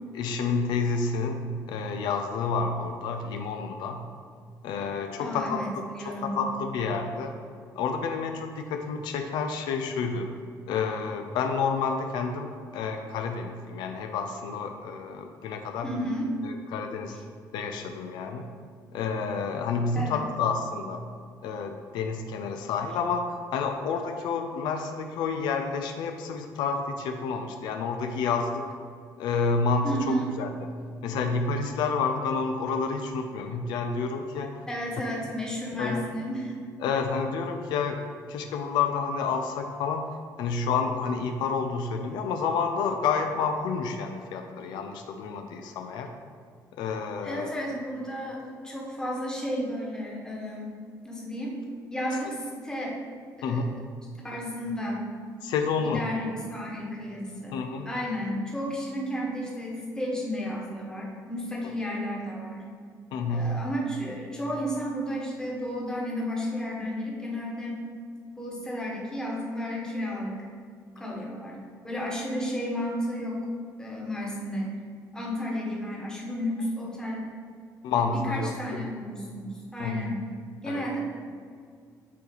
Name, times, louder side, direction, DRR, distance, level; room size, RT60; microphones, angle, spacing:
voice 1, 0.1-4.0 4.6-5.6 6.2-7.3 7.8-10.3 10.7-15.9 16.4-17.2 17.5-18.4 18.9-21.0 21.4-28.7 29.2-30.0 30.4-30.5 31.0-34.6 35.8-36.1 36.8-38.0 38.3-40.0 40.4-46.1 46.7-47.5 53.4-53.6 55.4-56.1 57.5-57.9 63.1-63.6 77.8-78.9 79.8-80.1 80.6-80.9, left 5 dB, 85° left, 5 dB, 0.5 m, -29 dB
voice 2, 5.2-5.7 5.9-6.3 15.8-16.3 19.9-20.2 29.8-30.3 34.7-36.5 47.2-50.7 51.0-51.6 51.9-53.0 53.4-53.6 54.2-55.0 55.8-62.7 63.3-67.8 68.4-70.5 70.9-73.5 73.8-74.8 75.1-77.3 77.9-80.3 80.6-81.0, equal, 10° left, -3 dB, 1.3 m, -32 dB
8.4 x 3.0 x 3.9 m, 2.1 s
cardioid pair, 100°, 7 cm